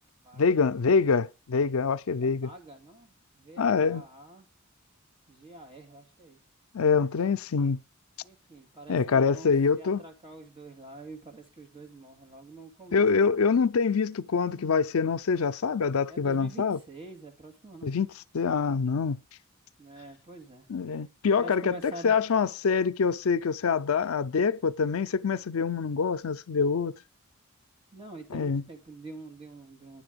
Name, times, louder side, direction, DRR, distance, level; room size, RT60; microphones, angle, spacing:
voice 1, 0.4-2.5 3.6-4.0 6.7-7.8 8.9-10.0 12.9-16.8 17.8-18.1 18.3-19.2 20.7-21.8 22.0-26.9 28.3-28.6, left 5 dB, 80° left, 0.5 m, -25 dB
voice 2, 2.2-4.5 5.3-6.4 8.2-13.1 16.1-18.0 19.8-20.7 21.4-22.1 27.9-30.0, right 2 dB, 25° right, 2.1 m, -46 dB
10.5 x 7.7 x 5.1 m
head